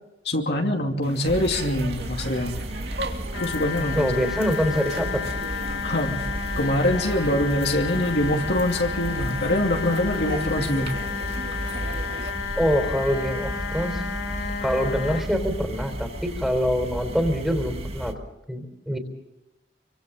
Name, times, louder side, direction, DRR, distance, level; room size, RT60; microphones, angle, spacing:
voice 1, 0.2-2.6 3.4-4.1 5.8-6.2 6.6-10.9, left 1 dB, 65° left, 1 dB, 2.8 m, -24 dB
sound 1, 1.0-12.3, right 2 dB, 65° right, 2.5 m, -38 dB
sound 2, 1.3-18.1, right 1 dB, 35° right, 1.7 m, -34 dB
sound 3, 3.3-15.2, left 6 dB, 85° left, 2.3 m, -32 dB
voice 2, 3.9-5.3 12.6-14.0 14.6-18.1 18.5-19.0, equal, ahead, 5 dB, 3.7 m, -25 dB
28.5 x 25.0 x 3.8 m, 0.93 s
head